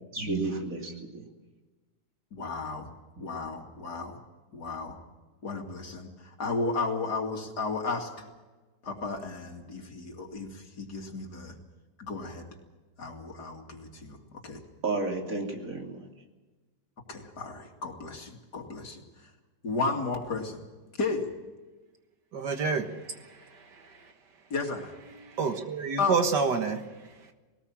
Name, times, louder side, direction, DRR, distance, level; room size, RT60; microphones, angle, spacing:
voice 1, 0.1-1.2 14.8-16.1, right 3 dB, 50° right, 1 dB, 3.2 m, -32 dB
voice 2, 2.3-2.9 3.2-4.2 4.5-5.0 5.4-8.3 8.8-11.5 12.0-12.5 13.0-14.6 17.1-19.3 19.6-20.6 21.0-21.3 24.5-24.9 26.0-26.2, left 3 dB, 70° left, 2 dB, 3.0 m, -34 dB
voice 3, 22.3-24.1 25.2-26.8, right 5 dB, 75° right, 6 dB, 2.1 m, -29 dB
20.5 x 19.0 x 7.3 m, 1.2 s
omnidirectional pair, 1.9 m